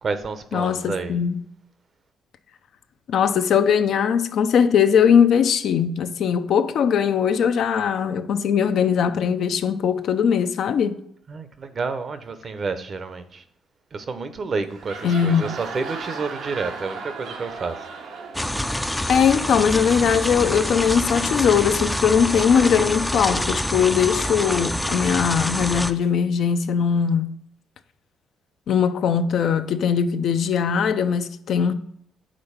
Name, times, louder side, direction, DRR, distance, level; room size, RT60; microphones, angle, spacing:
voice 1, 0.0-1.2 11.3-13.4 13.9-17.8, right 4 dB, 45° right, 0.7 m, -29 dB
voice 2, 0.5-1.4 3.1-10.9 15.0-15.5 19.1-27.3 28.7-31.7, left 7 dB, 70° left, 0.5 m, -20 dB
sound 1, 14.6-20.1, right 5 dB, 85° right, 0.9 m, -36 dB
sound 2, 18.3-25.9, left 1 dB, 5° left, 0.4 m, -26 dB
5.2 x 3.9 x 5.6 m
cardioid pair, 90°, 0 cm